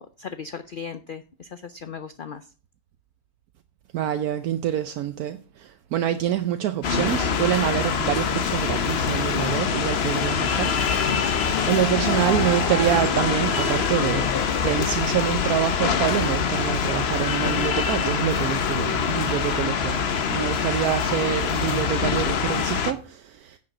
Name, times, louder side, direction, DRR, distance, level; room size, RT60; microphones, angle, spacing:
voice 1, 0.0-2.4, left 6 dB, 90° left, 0.4 m, -37 dB
voice 2, 3.9-11.2 11.7-14.3 14.6-23.6, right 11 dB, 75° right, 1.1 m, -26 dB
sound 1, 6.8-22.9, left 6 dB, 50° left, 0.9 m, -24 dB
sound 2, 11.7-15.7, right 4 dB, 40° right, 3.5 m, -36 dB
9.9 x 5.8 x 6.4 m
omnidirectional pair, 1.6 m